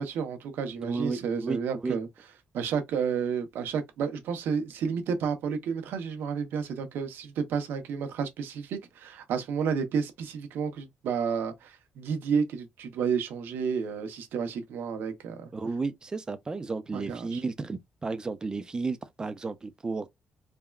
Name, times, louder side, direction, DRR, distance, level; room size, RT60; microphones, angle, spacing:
voice 1, 0.0-2.1 2.5-15.5 16.9-17.4, right 6 dB, 85° right, 0.7 m, -31 dB
voice 2, 0.8-2.0 15.5-20.1, right 4 dB, 20° right, 0.4 m, -33 dB
3.5 x 2.2 x 2.2 m
cardioid pair, 135°, 4 cm